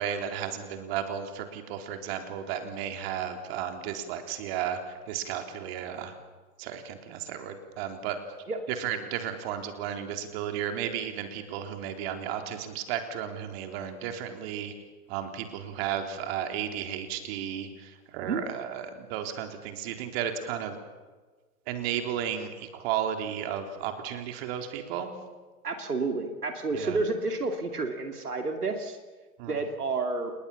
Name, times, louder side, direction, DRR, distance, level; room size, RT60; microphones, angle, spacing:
voice 1, 0.0-6.1 6.6-8.2 8.7-14.7 15.1-20.8 21.7-25.1 26.7-27.0 29.4-29.6, right 9 dB, 40° right, 6 dB, 3.6 m, -34 dB
voice 2, 25.6-29.0 29.4-30.3, right 3 dB, 75° right, 5 dB, 2.7 m, -30 dB
29.5 x 20.5 x 7.1 m, 1.4 s
figure-of-eight pair, 105°, 46 cm